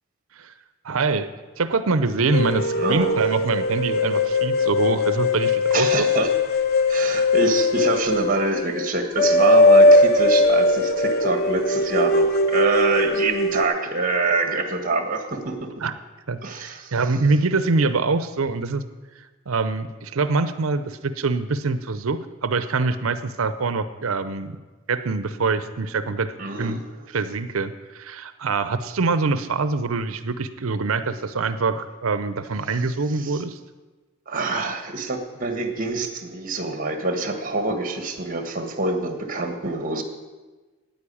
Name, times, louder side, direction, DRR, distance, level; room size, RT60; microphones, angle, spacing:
voice 1, 0.8-1.3 1.6-6.1 15.8-15.9 16.3-18.8 19.2-24.6 24.9-26.3 26.6-26.8 27.1-33.6, right 3 dB, 75° right, 12 dB, 0.7 m, -24 dB
sound 1, 2.3-13.6, left 2 dB, 45° left, 0.8 m, -19 dB
voice 2, 2.7-3.1 5.7-6.3 6.9-15.7 16.4-16.9 26.4-26.9 33.1-33.4 34.3-40.0, right 3 dB, 40° right, 7 dB, 1.5 m, -25 dB
9.6 x 9.4 x 8.5 m, 1.3 s
head